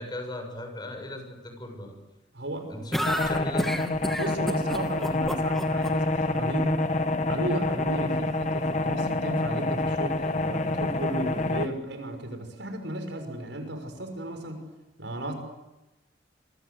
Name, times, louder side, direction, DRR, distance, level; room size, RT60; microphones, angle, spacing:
voice 1, 0.0-2.0 2.7-4.0, left 1 dB, 25° left, 5 dB, 6.9 m, -37 dB
voice 2, 2.3-2.8 4.2-6.8 7.3-14.6 15.0-15.3, right 1 dB, 90° right, 6 dB, 6.1 m, -34 dB
sound 1, 2.9-5.9, equal, ahead, 2.5 m, -30 dB
sound 2, 3.0-11.7, left 2 dB, 40° left, 1.5 m, -27 dB
28.0 x 23.5 x 8.1 m, 1.0 s
head